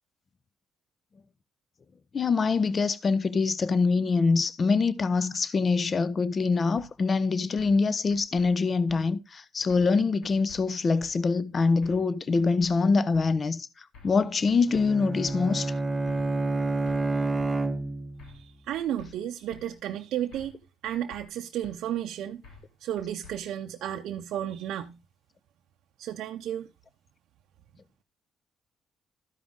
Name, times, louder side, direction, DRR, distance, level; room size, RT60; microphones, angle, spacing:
voice 1, 2.1-13.7 14.0-15.7, left 4 dB, 40° left, 0.6 m, -24 dB
sound 1, 6.8-6.9 7.6-7.8 8.1-8.5 8.9-9.0 9.7-10.0 10.2-10.6 11.0-11.1 11.8-12.1 12.3-12.7 13.1-13.3 13.9-14.2 14.5-14.9 15.3-15.4 16.1-16.3 16.6-17.0 17.4-17.5 18.2-18.5 18.7-19.1 19.5-19.6 20.3-20.6 20.8-21.2 21.6-21.8 22.4-22.7 23.0-23.4, left 5 dB, 80° left, 2.5 m, -50 dB
Bowed string instrument, 14.7-18.3, right 2 dB, 20° right, 1.1 m, -29 dB
voice 2, 18.3-22.4 22.8-25.0 26.0-26.7, right 11 dB, 80° right, 0.6 m, -33 dB
13.5 x 5.1 x 3.6 m
cardioid pair, 90°, 0 cm